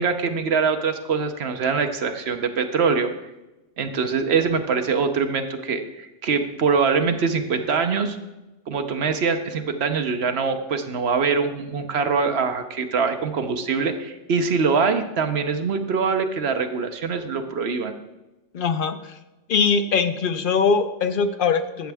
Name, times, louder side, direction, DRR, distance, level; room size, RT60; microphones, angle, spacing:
voice 1, 0.0-3.1 3.8-8.2 8.7-17.9, right 5 dB, 60° right, 7 dB, 1.0 m, -23 dB
voice 2, 18.5-19.1 19.5-21.9, left 5 dB, 50° left, 9 dB, 0.7 m, -22 dB
14.0 x 7.2 x 3.4 m, 1.0 s
omnidirectional pair, 1.3 m